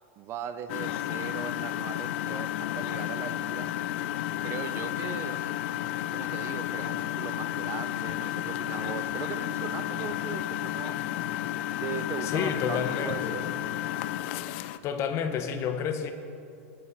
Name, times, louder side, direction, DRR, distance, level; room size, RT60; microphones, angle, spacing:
voice 1, 0.2-3.7 4.4-5.4 6.1-11.2 11.8-13.5, right 9 dB, 40° right, 12 dB, 0.6 m, -39 dB
Engine, 0.7-14.8, left 13 dB, 60° left, 0.5 m, -32 dB
voice 2, 12.2-13.4 14.8-16.1, left 7 dB, 40° left, 7 dB, 1.3 m, -30 dB
20.5 x 7.3 x 5.1 m, 2.5 s
supercardioid pair, 125°, 7 cm